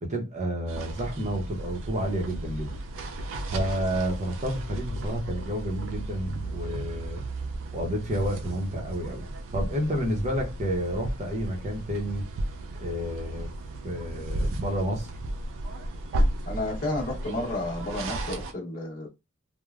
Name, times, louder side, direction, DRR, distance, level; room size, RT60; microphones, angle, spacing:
voice 1, 0.0-2.7 3.5-7.2 7.7-9.2 9.5-12.2 12.8-13.5 13.8-15.1, equal, 30° right, 0.8 m, -30 dB
sound 1, 0.7-18.5, right 1 dB, 60° right, 0.4 m, -34 dB
voice 2, 16.4-19.1, left 2 dB, 40° left, 1.0 m, -31 dB
3.2 x 2.1 x 2.4 m
head